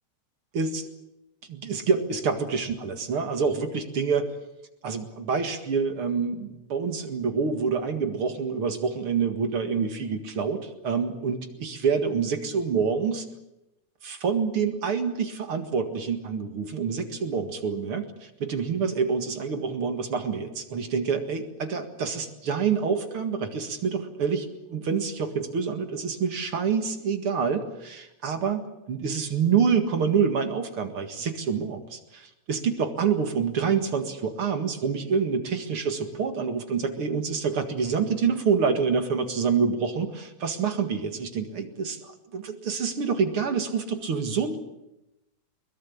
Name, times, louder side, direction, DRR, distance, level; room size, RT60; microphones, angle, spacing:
voice 1, 1.5-4.3 4.8-13.3 14.0-44.6, right 6 dB, 50° right, 7 dB, 2.6 m, -27 dB
22.0 x 21.5 x 8.5 m, 0.94 s
omnidirectional pair, 3.3 m